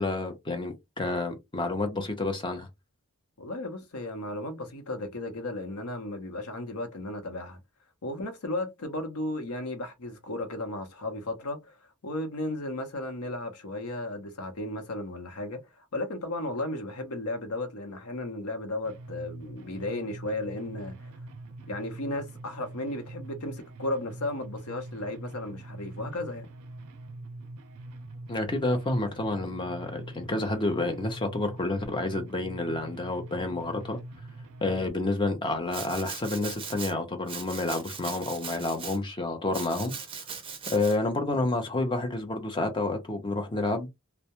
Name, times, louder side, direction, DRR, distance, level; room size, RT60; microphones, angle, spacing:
voice 1, 0.0-2.7 28.3-34.0 34.6-39.9 40.7-43.9, left 2 dB, 20° left, 0.5 m, -29 dB
voice 2, 3.4-7.6 8.0-21.1 21.7-26.5, left 2 dB, 80° left, 0.7 m, -35 dB
sound 1, 18.8-34.9, right 2 dB, 80° right, 0.4 m, -43 dB
Domestic sounds home sounds, 35.7-36.9 37.3-39.0 39.5-41.0, right 6 dB, 25° right, 0.5 m, -39 dB
2.2 x 2.0 x 2.8 m
head